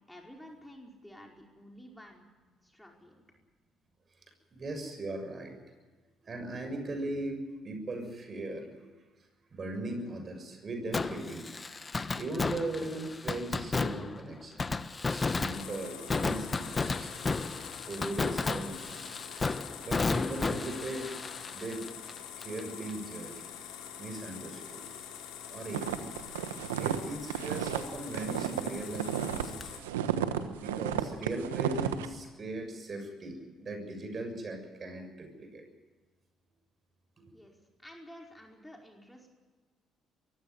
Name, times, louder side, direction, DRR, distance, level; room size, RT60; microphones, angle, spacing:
voice 1, 0.1-2.2 2.6-3.2 37.3-39.3, equal, 10° left, 0 dB, 4.9 m, -51 dB
voice 2, 4.5-5.6 6.2-8.9 9.5-11.5 12.2-14.7 15.1-17.3 17.9-19.1 19.4-19.5 19.8-21.1 21.5-21.9 22.4-23.4 24.0-24.9 25.5-26.2 26.7-29.9 30.6-35.6, right 2 dB, 40° right, 6 dB, 6.8 m, -39 dB
Fireworks, 10.9-22.6 22.9-23.0 29.6-29.7, left 4 dB, 30° left, 1.1 m, -33 dB
sound 1, 15.5-29.8, left 9 dB, 80° left, 3.8 m, -45 dB
sound 2, 25.7-29.5 29.8-32.1, right 10 dB, 90° right, 1.2 m, -32 dB
23.0 x 15.5 x 9.4 m, 1.3 s
hypercardioid pair, 55°, 0 cm